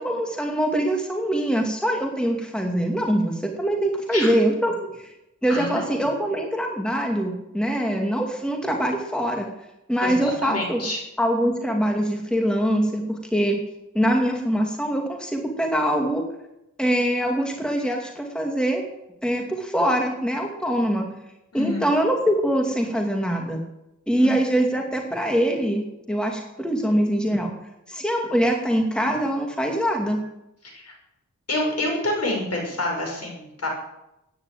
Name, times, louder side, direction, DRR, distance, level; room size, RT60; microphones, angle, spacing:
voice 1, 0.0-5.1 5.4-9.5 9.9-10.8 11.2-13.6 13.9-16.2 16.8-18.8 19.2-21.1 21.5-23.6 24.1-27.5 27.9-30.2, equal, 5° left, 2 dB, 2.3 m, -23 dB
voice 2, 5.5-6.0 10.0-11.0 21.5-21.8 24.2-24.3 30.6-30.9 31.5-33.7, left 1 dB, 50° left, 1 dB, 6.5 m, -27 dB
15.0 x 10.0 x 9.0 m, 0.90 s
wide cardioid pair, 105°, 31 cm